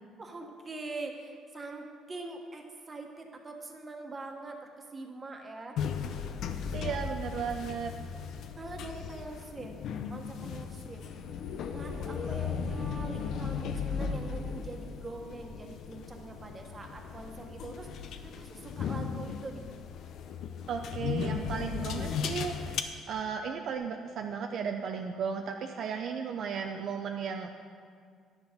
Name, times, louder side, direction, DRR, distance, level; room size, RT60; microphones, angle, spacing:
voice 1, 0.2-5.8 6.8-7.0 8.6-9.8 10.1-11.0 11.7-19.6, right 2 dB, 25° right, 2 dB, 1.3 m, -43 dB
sound 1, 5.8-22.8, left 6 dB, 65° left, 0.6 m, -36 dB
voice 2, 6.7-7.9 20.7-27.5, right 6 dB, 60° right, 4 dB, 0.5 m, -35 dB
10.5 x 7.1 x 5.2 m, 2.1 s
cardioid pair, 100°, 0 cm